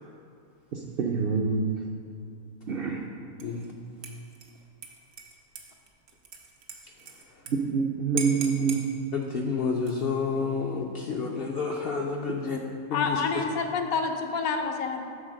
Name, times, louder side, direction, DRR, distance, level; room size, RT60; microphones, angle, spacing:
voice 1, 0.7-1.7 2.7-3.0 7.5-8.8, right 5 dB, 60° right, 0 dB, 0.6 m, -26 dB
Dishes pots and pans / Liquid, 3.4-3.7 4.0-7.5 7.8-7.9 8.2-8.8 9.7-10.2, right 6 dB, 90° right, 1.3 m, -40 dB
voice 2, 9.1-12.6 12.9-13.4, left 5 dB, 60° left, 1 dB, 0.6 m, -30 dB
voice 3, 12.9-15.0, left 5 dB, 80° left, 4 dB, 1.2 m, -28 dB
8.8 x 4.0 x 6.3 m, 2.3 s
omnidirectional pair, 1.5 m